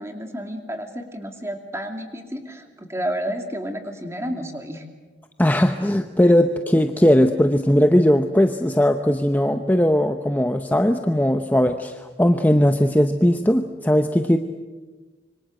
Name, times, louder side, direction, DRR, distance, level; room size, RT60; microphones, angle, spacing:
voice 1, 0.0-4.8, equal, 15° right, 5 dB, 2.6 m, -31 dB
voice 2, 5.4-14.4, equal, 10° left, 7 dB, 0.8 m, -18 dB
26.0 x 24.5 x 7.7 m, 1.3 s
head